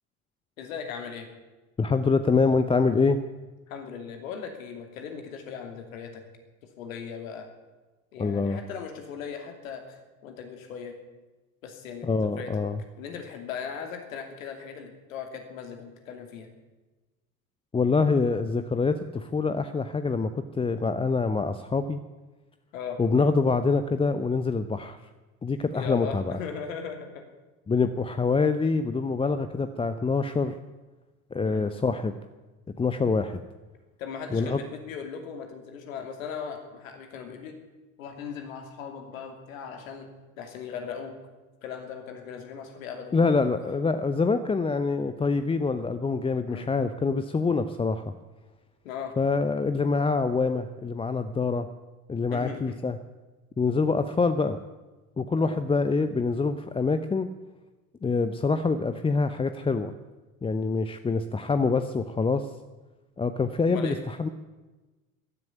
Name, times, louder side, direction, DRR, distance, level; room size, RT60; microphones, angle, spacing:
voice 1, 0.6-1.3 3.7-6.2 6.8-7.5 8.1-10.9 11.6-12.5 13.0-16.5 22.7-23.0 25.7-27.2 31.4-31.7 34.0-37.6 38.0-40.1 40.4-41.1 41.6-43.2 43.6-43.7 46.5-46.7 48.8-49.1 52.3-52.8 55.4-55.6 63.7-64.0, left 6 dB, 70° left, 5 dB, 2.8 m, -38 dB
voice 2, 1.8-3.2 8.2-8.6 12.0-12.8 17.7-22.0 23.0-25.0 25.4-26.3 27.7-30.6 31.3-32.1 32.8-33.4 34.3-34.6 43.1-48.1 49.2-51.7 52.1-53.0 53.6-54.6 55.2-57.3 58.0-59.9 60.4-62.5 63.2-64.3, left 4 dB, 15° left, 10 dB, 0.7 m, -25 dB
14.5 x 10.5 x 9.2 m, 1.2 s
figure-of-eight pair, 65°, 42 cm